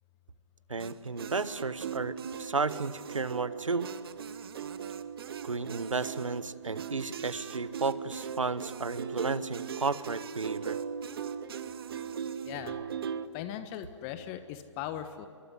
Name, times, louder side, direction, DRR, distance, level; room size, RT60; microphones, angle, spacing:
voice 1, 0.7-3.9 5.4-10.8, right 4 dB, 80° right, 16 dB, 1.2 m, -33 dB
sound 1, 0.8-13.3, right 7 dB, 50° right, 1.2 m, -39 dB
voice 2, 12.4-12.8 13.3-15.3, left 11 dB, 25° left, 10 dB, 1.2 m, -39 dB
25.5 x 23.0 x 10.0 m, 2.4 s
figure-of-eight pair, 135°, 16 cm